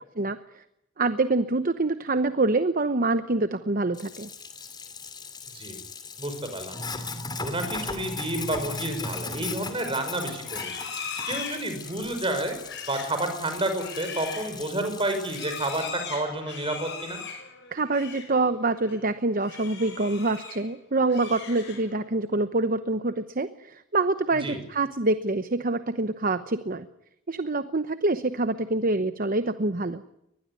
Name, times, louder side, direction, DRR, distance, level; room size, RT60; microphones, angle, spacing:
voice 1, 0.2-0.6 1.0-4.3 17.7-26.9 27.3-30.0, right 2 dB, 40° right, 11 dB, 0.9 m, -26 dB
Sink (filling or washing), 3.9-15.9, left 4 dB, 20° left, 2.6 m, -38 dB
voice 2, 6.2-6.8 7.4-10.7 11.3-12.6 12.9-17.2 24.4-24.6, right 1 dB, 25° right, 7 dB, 5.7 m, -30 dB
Livestock farm animals working animals, 10.4-18.4 18.7-19.0 19.4-20.7 21.0-22.1, left 6 dB, 55° left, 6.7 m, -40 dB
23.5 x 20.0 x 9.7 m, 0.82 s
head